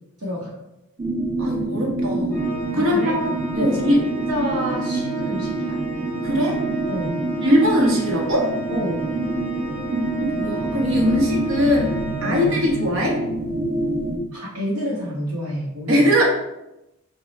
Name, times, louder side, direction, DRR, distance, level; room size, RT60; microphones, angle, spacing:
voice 1, 0.2-0.5 2.7-3.1 3.5-3.9 4.3-5.8 6.9-7.2 8.7-9.1 11.1-11.2 12.2-12.5 14.3-16.1, equal, 90° right, -7 dB, 1.0 m, -28 dB
sound 1, 1.0-14.2, right 2 dB, 35° right, 1.0 m, -27 dB
voice 2, 1.4-2.5 2.7-3.2 3.5-4.0 6.2-6.6 7.4-8.5 10.2-11.9 12.2-13.2 15.9-16.2, equal, 60° right, -1 dB, 1.0 m, -20 dB
Organ, 2.3-13.1, right 6 dB, 10° left, 1.0 m, -32 dB
6.7 x 2.3 x 3.1 m, 0.92 s
head